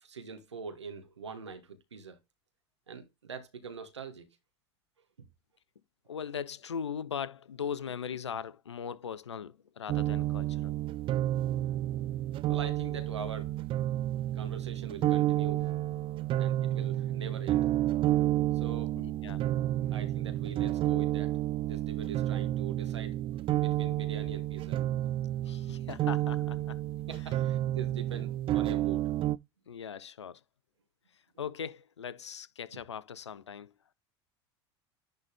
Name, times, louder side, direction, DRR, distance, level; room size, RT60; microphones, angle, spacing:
voice 1, 0.0-2.2 2.9-4.3 11.6-11.8 12.5-13.5 14.3-15.7 16.4-17.7 18.5-19.0 19.9-21.3 21.6-23.2 23.6-24.8 27.1-29.1, right 5 dB, 85° right, 1.4 m, -43 dB
voice 2, 6.1-10.7 19.0-19.4 25.4-26.8 29.7-30.4 31.1-33.7, left 7 dB, 85° left, 0.6 m, -39 dB
sound 1, 9.9-29.4, right 14 dB, 40° right, 0.5 m, -30 dB
10.5 x 4.0 x 3.5 m
hypercardioid pair, 80°, 14 cm